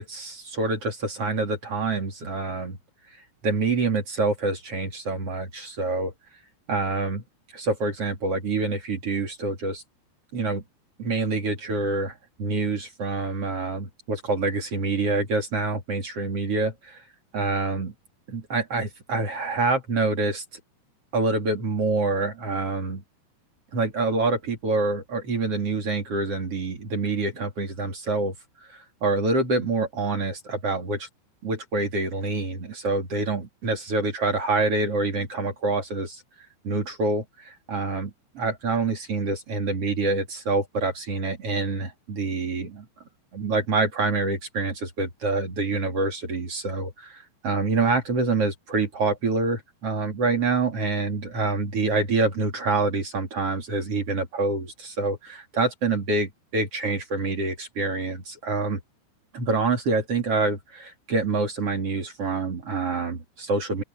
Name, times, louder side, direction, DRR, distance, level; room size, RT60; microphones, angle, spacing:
voice 1, 0.0-2.8 3.4-6.1 6.7-7.2 7.5-9.8 10.3-10.6 11.0-17.0 17.3-17.9 18.3-20.4 21.1-23.0 23.7-28.3 28.7-31.1 31.4-36.2 36.6-42.9 43.3-58.8 59.3-63.8, right 3 dB, 35° right, 3.3 m, -26 dB
open air
omnidirectional pair, 5.1 m